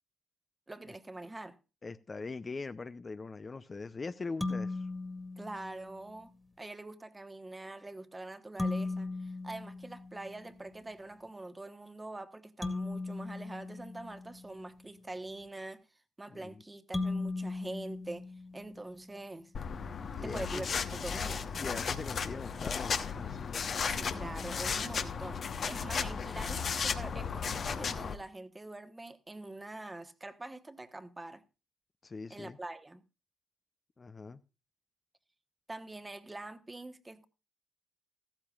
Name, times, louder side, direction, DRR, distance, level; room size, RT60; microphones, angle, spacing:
voice 1, 0.7-1.6 5.4-15.8 16.2-18.2 18.5-19.5 20.2-20.7 21.0-21.4 23.8-31.4 32.3-33.0 35.7-37.3, right 2 dB, 20° right, 1.2 m, -44 dB
voice 2, 1.8-4.9 16.3-16.6 20.2-20.7 21.6-23.5 32.0-32.6 34.0-34.4, left 4 dB, 35° left, 0.7 m, -42 dB
sound 1, 4.4-6.1 8.6-10.6 12.6-14.7 16.9-19.0, left 3 dB, 15° left, 2.0 m, -38 dB
sound 2, 19.5-28.1, left 6 dB, 50° left, 1.1 m, -35 dB
14.5 x 13.5 x 2.4 m
hypercardioid pair, 55°, 0 cm